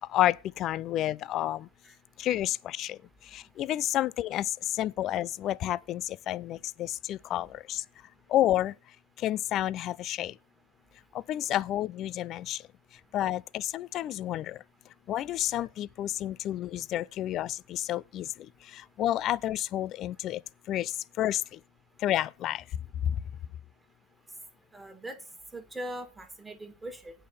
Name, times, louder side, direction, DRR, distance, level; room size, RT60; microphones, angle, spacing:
voice 1, 0.1-1.7 2.2-7.8 8.3-8.7 9.2-10.4 11.1-12.6 13.1-14.6 15.1-20.4 20.7-21.6 22.0-22.6, left 13 dB, 35° left, 0.4 m, -30 dB
voice 2, 24.7-25.2 25.5-27.1, right 1 dB, 5° right, 1.8 m, -40 dB
8.6 x 5.4 x 6.9 m
hypercardioid pair, 135°, 0 cm